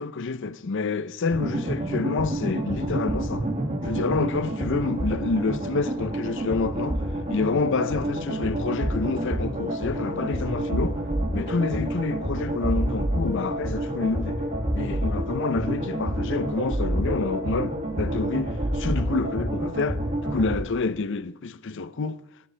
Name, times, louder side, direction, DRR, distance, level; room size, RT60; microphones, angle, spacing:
voice 1, 0.0-3.5 3.8-11.0 11.3-14.4 14.7-22.2, left 4 dB, 60° left, 0.6 m, -28 dB
sound 1, 1.3-20.6, right 1 dB, 35° right, 2.1 m, -28 dB
25.0 x 11.0 x 3.4 m
head